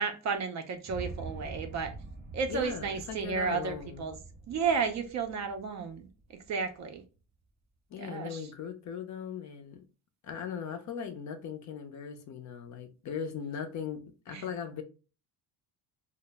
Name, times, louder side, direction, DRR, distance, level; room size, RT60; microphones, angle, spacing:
voice 1, 0.0-1.9 2.3-4.2 4.5-6.1 6.5-7.0 8.0-8.4 14.3-14.4, right 5 dB, 40° right, 0.4 m, -32 dB
sound 1, 0.8-7.0, right 3 dB, 25° right, 0.8 m, -45 dB
voice 2, 2.5-4.1 7.9-9.9 10.2-14.8, left 7 dB, 40° left, 0.5 m, -39 dB
2.0 x 2.0 x 3.2 m
cardioid pair, 105°, 44 cm